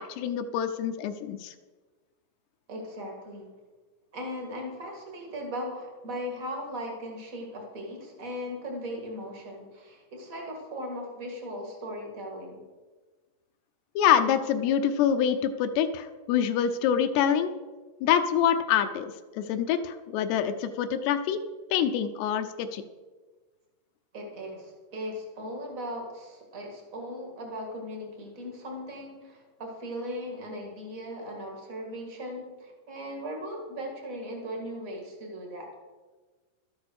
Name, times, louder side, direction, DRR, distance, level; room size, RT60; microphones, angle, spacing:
voice 1, 0.0-1.5 14.0-17.5 18.0-21.4 21.7-22.8, left 9 dB, 80° left, 9 dB, 2.5 m, -26 dB
voice 2, 2.7-3.5 4.1-12.6 24.1-35.7, equal, 45° right, 1 dB, 1.0 m, -38 dB
12.5 x 8.6 x 6.3 m, 1.3 s
omnidirectional pair, 5.1 m